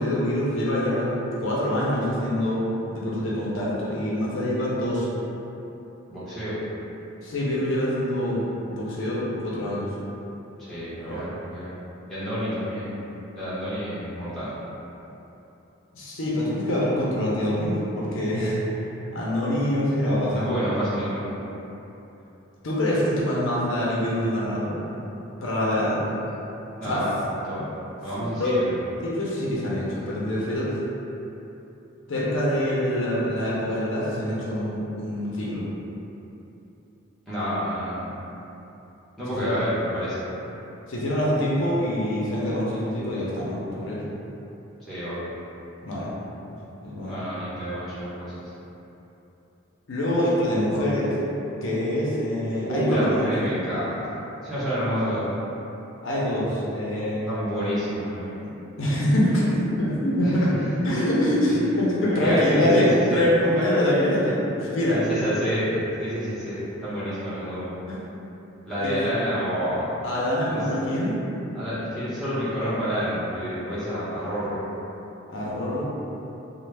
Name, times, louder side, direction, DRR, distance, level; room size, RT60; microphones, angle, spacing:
voice 1, 0.0-5.1 7.2-9.9 11.1-11.3 15.9-18.6 19.1-20.5 22.6-24.7 25.4-26.0 26.8-27.1 27.5-27.6 28.2-28.6 29.0-30.7 32.1-35.7 39.3-39.5 40.9-44.0 45.8-46.1 46.8-47.2 49.9-51.2 51.6-53.3 56.0-57.3 58.8-60.5 60.8-65.0 67.9-68.0 68.8-69.0 70.0-71.2 75.3-75.8, left 1 dB, 70° left, -6 dB, 0.6 m, -25 dB
voice 2, 6.1-6.6 10.6-11.7 12.1-13.0 13.3-14.5 20.3-21.3 26.8-27.1 27.4-27.6 28.0-28.7 37.3-38.1 39.2-40.2 44.9-45.3 47.0-48.4 52.6-54.2 54.4-55.4 57.3-58.4 60.2-60.9 62.0-63.2 64.9-67.8 68.7-69.9 70.5-70.6 71.5-74.6, equal, ahead, -14 dB, 1.0 m, -28 dB
3.1 x 2.1 x 3.3 m, 3.0 s
head